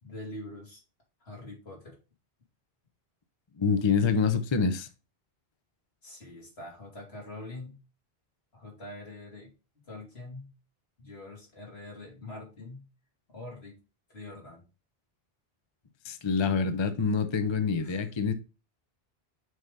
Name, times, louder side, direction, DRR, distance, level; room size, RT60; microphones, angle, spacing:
voice 1, 0.0-0.8 1.2-2.0 6.0-7.8 8.5-10.5 11.0-12.9 13.3-13.8 14.1-14.6 17.8-18.0, left 2 dB, 75° left, 3.2 m, -44 dB
voice 2, 3.6-4.9 16.0-18.3, left 5 dB, 35° left, 0.6 m, -26 dB
6.4 x 3.4 x 5.3 m
omnidirectional pair, 1.1 m